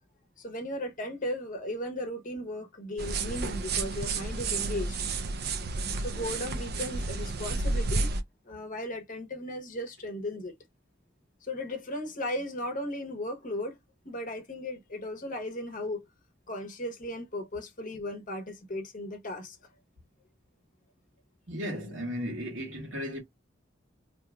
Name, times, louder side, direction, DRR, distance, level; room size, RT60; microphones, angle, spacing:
voice 1, 0.4-5.0 6.0-8.1 8.4-10.5 11.4-13.8 14.0-16.1 16.5-19.6, left 1 dB, 45° left, 0.8 m, -36 dB
sound 1, 3.0-8.2, right 3 dB, 55° right, 0.5 m, -31 dB
voice 2, 21.5-23.2, equal, 80° right, 1.2 m, -35 dB
2.7 x 2.3 x 3.3 m
head